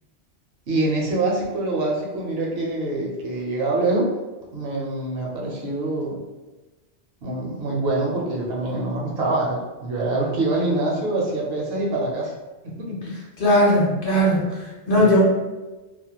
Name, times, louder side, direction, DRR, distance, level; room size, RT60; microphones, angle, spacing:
voice 1, 0.7-4.1 4.5-6.2 7.2-12.3 12.8-13.0 14.9-15.2, right 2 dB, 70° right, -2 dB, 0.8 m, -25 dB
voice 2, 13.4-15.2, equal, 55° left, -4 dB, 0.8 m, -18 dB
2.4 x 2.1 x 2.8 m, 1.1 s
omnidirectional pair, 1.1 m